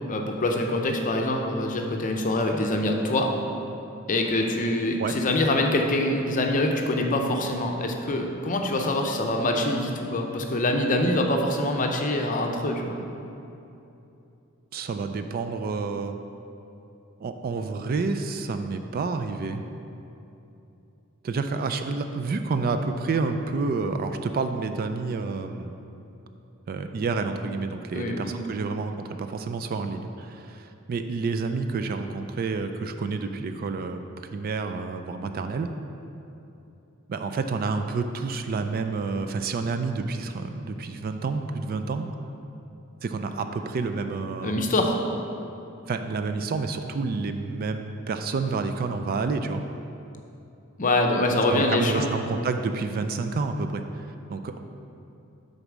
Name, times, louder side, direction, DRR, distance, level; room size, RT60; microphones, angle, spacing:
voice 1, 0.1-3.3 4.1-13.0 27.9-28.3 44.4-45.0 50.8-52.1, left 1 dB, 40° left, 3 dB, 0.6 m, -24 dB
voice 2, 14.7-16.2 17.2-19.6 21.2-25.7 26.7-34.0 34.3-35.7 37.1-42.1 43.0-44.6 45.9-49.6 51.5-54.6, right 4 dB, 45° right, 7 dB, 0.3 m, -29 dB
6.7 x 4.1 x 6.1 m, 2.8 s
head